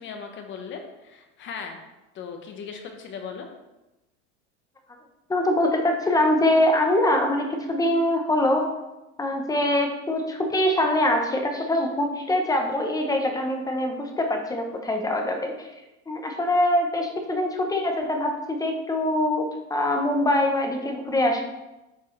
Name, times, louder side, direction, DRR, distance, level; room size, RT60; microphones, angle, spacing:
voice 1, 0.0-1.8 2.1-3.5, left 6 dB, 35° left, 5 dB, 1.0 m, -38 dB
voice 2, 5.3-8.7 9.2-15.7 16.1-21.4, left 1 dB, 10° left, 3 dB, 0.8 m, -23 dB
8.2 x 5.3 x 3.2 m, 1.0 s
supercardioid pair, 135°, 34 cm